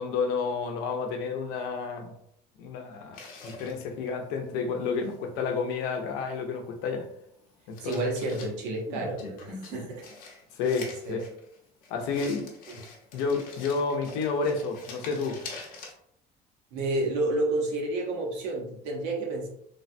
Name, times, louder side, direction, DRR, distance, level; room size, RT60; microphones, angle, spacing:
voice 1, 0.0-2.1 2.6-3.2 3.4-7.1 7.7-8.0 10.6-11.2 11.9-12.5 13.1-15.4, left 5 dB, 85° left, 4 dB, 0.6 m, -30 dB
sound 1, 3.1-4.2 5.0-5.2 7.2-8.5 8.9-15.9, left 3 dB, 55° left, 0.7 m, -44 dB
voice 2, 7.8-10.1 11.1-11.2 12.7-12.8 16.7-19.5, right 2 dB, 80° right, -1 dB, 0.9 m, -30 dB
3.3 x 2.1 x 2.5 m, 0.72 s
cardioid pair, 165°, 18 cm